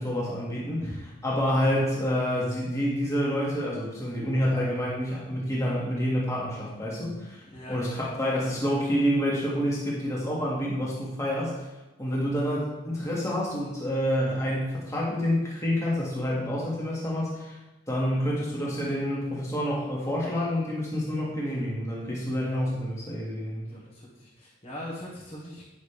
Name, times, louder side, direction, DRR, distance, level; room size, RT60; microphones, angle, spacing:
voice 1, 0.0-11.5 12.0-17.6 17.9-23.7, equal, 15° left, -5 dB, 2.0 m, -28 dB
voice 2, 7.5-8.0 23.7-25.6, left 1 dB, 30° left, -9 dB, 1.7 m, -41 dB
9.5 x 6.3 x 3.4 m, 1.1 s
head